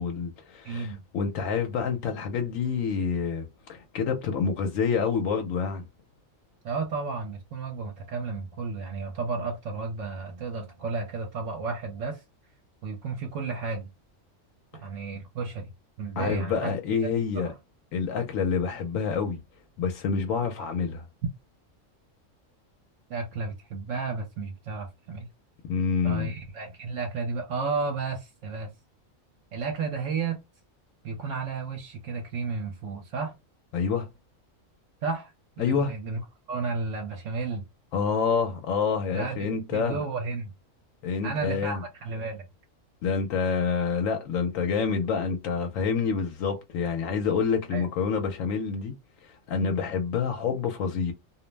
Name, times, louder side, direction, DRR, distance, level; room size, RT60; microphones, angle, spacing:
voice 1, 0.0-5.8 16.2-17.5 17.9-19.4 19.8-21.0 25.7-26.3 33.7-34.1 35.6-35.9 37.9-40.0 41.0-41.8 43.0-48.9 49.2-51.1, left 5 dB, 80° left, 1.0 m, -27 dB
voice 2, 0.6-1.0 6.6-12.2 12.8-13.9 14.7-15.7 16.0-16.7 17.4-17.5 23.1-25.3 26.0-28.7 29.5-30.4 31.0-33.4 35.0-35.3 35.6-36.2 36.5-37.6 39.1-39.4 39.7-40.5 41.2-42.4 47.7-47.9, right 4 dB, 75° right, 1.0 m, -32 dB
2.5 x 2.0 x 3.1 m
omnidirectional pair, 1.4 m